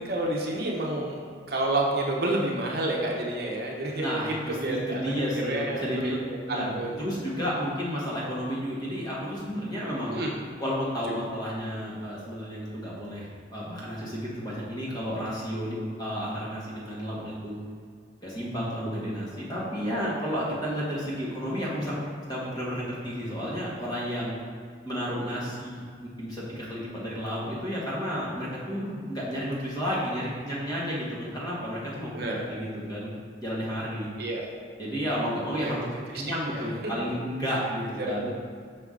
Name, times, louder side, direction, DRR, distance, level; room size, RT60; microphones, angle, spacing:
voice 1, 0.0-7.0 10.1-10.3 11.1-11.2 32.1-32.4 34.2-34.5 35.6-35.7 36.1-36.2 36.5-36.9 38.0-38.3, right 1 dB, 55° right, -1 dB, 0.8 m, -30 dB
voice 2, 4.0-6.2 6.5-10.1 10.6-17.6 18.2-22.0 22.3-24.3 24.8-32.1 32.4-33.1 33.4-34.1 34.8-35.8 36.1-38.3, equal, 20° left, -6 dB, 1.4 m, -32 dB
5.9 x 5.4 x 3.7 m, 2.1 s
head